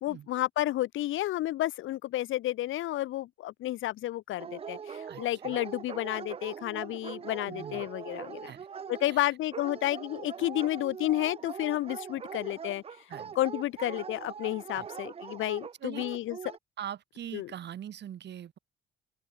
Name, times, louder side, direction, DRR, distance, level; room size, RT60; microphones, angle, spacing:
voice 1, 0.0-8.5 8.9-12.8 13.3-16.4 17.3-17.5, left 15 dB, 75° left, 0.9 m, -31 dB
Dog, 4.4-16.6, right 7 dB, 30° right, 0.5 m, -42 dB
voice 2, 5.1-5.6 7.5-7.9 8.4-8.7 9.1-9.3 13.1-13.4 14.8-14.9 15.8-16.1 16.8-18.6, right 10 dB, 60° right, 1.6 m, -42 dB
open air
cardioid pair, 95°, 20 cm